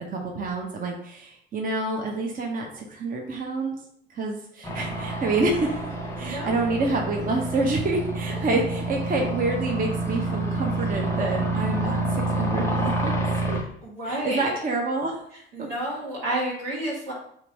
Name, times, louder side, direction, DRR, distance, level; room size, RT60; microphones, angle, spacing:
voice 1, 0.1-3.7 4.1-5.8 6.2-12.0 12.3-13.1 13.5-13.6 14.0-15.2 15.6-15.7, right 2 dB, 30° right, 1 dB, 0.8 m, -27 dB
sound 1, 4.6-13.6, right 2 dB, 10° left, 0.9 m, -28 dB
voice 2, 6.2-6.6 8.3-8.4 13.8-14.4 15.5-17.1, right 1 dB, 75° right, -6 dB, 1.7 m, -30 dB
3.4 x 3.1 x 3.9 m, 0.66 s
figure-of-eight pair, 55°, 29 cm